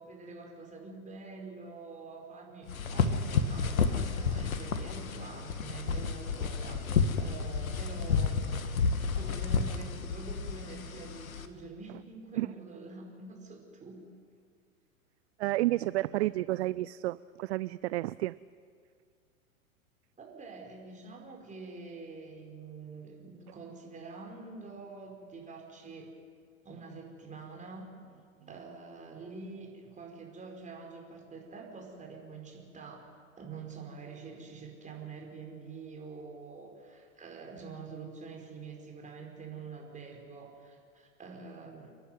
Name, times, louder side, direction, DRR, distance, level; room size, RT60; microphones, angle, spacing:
voice 1, 0.0-14.0 20.2-26.1 26.6-27.9 28.5-33.1 33.4-41.9, right 4 dB, 15° right, 1 dB, 5.4 m, -46 dB
sound 1, 2.7-11.5, left 5 dB, 75° left, 1.7 m, -31 dB
voice 2, 15.4-18.3, right 17 dB, 50° right, 18 dB, 0.5 m, -31 dB
30.0 x 11.5 x 9.6 m, 2.1 s
figure-of-eight pair, 95°, 42 cm